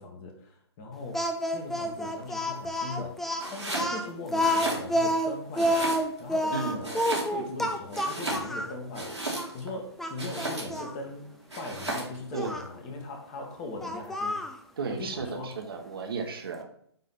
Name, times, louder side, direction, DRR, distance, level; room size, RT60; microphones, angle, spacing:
voice 1, 0.0-3.2 3.5-9.3 9.5-14.4 14.9-15.6, left 2 dB, 25° left, 2 dB, 1.3 m, -40 dB
Speech, 1.1-8.7 9.3-9.5 10.0-10.9 12.3-12.7 13.8-14.6, equal, ahead, 0.3 m, -29 dB
Domestic sounds home sounds, 3.4-3.9 4.3-5.2 5.6-6.3 6.8-7.6 7.9-9.7 10.2-10.9 11.5-12.2, right 2 dB, 90° right, 2.6 m, -34 dB
voice 2, 6.5-6.8 12.3-12.5 14.8-16.7, right 5 dB, 60° right, 4 dB, 1.2 m, -34 dB
9.1 x 3.2 x 4.1 m, 0.66 s
figure-of-eight pair, 130°, 14 cm